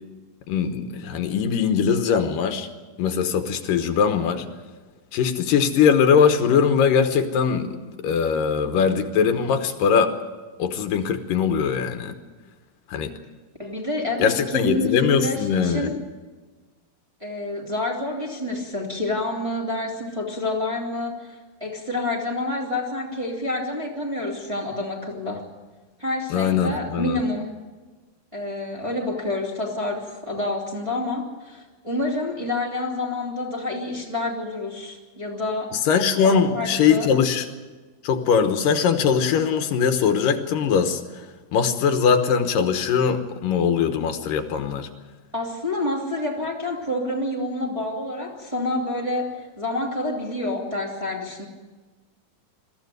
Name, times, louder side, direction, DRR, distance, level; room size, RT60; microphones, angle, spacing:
voice 1, 0.5-2.7 3.0-4.5 5.1-10.1 10.6-12.1 12.9-13.1 14.2-15.9 26.3-27.2 35.9-37.5 38.0-41.2 41.5-44.9, left 6 dB, 75° left, 7 dB, 2.8 m, -21 dB
voice 2, 13.6-16.0 17.2-25.5 26.0-27.6 28.3-35.8 36.2-37.1 45.3-51.5, left 2 dB, 10° right, -2 dB, 2.6 m, -28 dB
21.5 x 14.5 x 9.3 m, 1.3 s
omnidirectional pair, 3.9 m